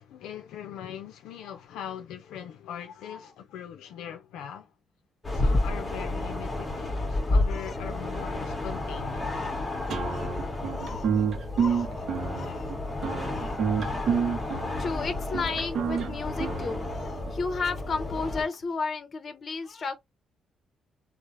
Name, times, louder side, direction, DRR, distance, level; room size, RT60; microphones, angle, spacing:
voice 1, 0.0-4.7 5.3-9.5, left 9 dB, 90° left, 0.4 m, -41 dB
sound 1, 5.2-18.4, left 2 dB, 20° left, 1.0 m, -31 dB
voice 2, 9.3-9.6 10.0-12.8 13.2-13.6 14.4-20.0, left 4 dB, 45° left, 0.6 m, -35 dB
sound 2, 9.9-17.3, right 6 dB, 65° right, 0.6 m, -29 dB
3.2 x 2.0 x 2.5 m
cardioid pair, 90°, 0 cm